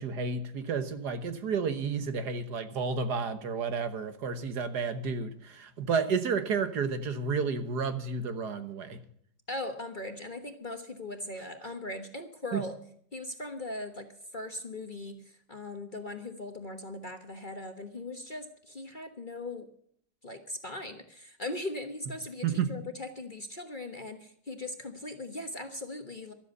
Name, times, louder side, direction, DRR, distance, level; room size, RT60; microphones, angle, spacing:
voice 1, 0.0-9.0 12.5-12.6 22.4-22.7, right 5 dB, 65° right, 9 dB, 1.7 m, -31 dB
voice 2, 9.5-12.8 13.1-15.2 15.5-19.7 20.2-26.3, left 2 dB, 30° left, 6 dB, 1.2 m, -39 dB
13.0 x 13.0 x 5.4 m, 0.63 s
omnidirectional pair, 1.9 m